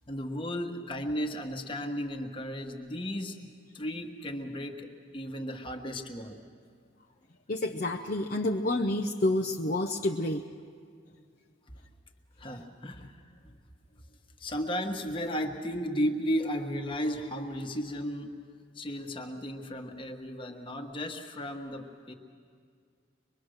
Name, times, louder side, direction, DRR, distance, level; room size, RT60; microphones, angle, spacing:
voice 1, 0.1-3.4 3.7-6.4 12.4-13.1 13.5-13.6 14.4-18.3 18.7-22.1, equal, 25° left, 3 dB, 1.3 m, -34 dB
voice 2, 7.5-10.4, left 1 dB, 45° left, 2 dB, 0.6 m, -29 dB
24.5 x 22.0 x 6.5 m, 2.1 s
head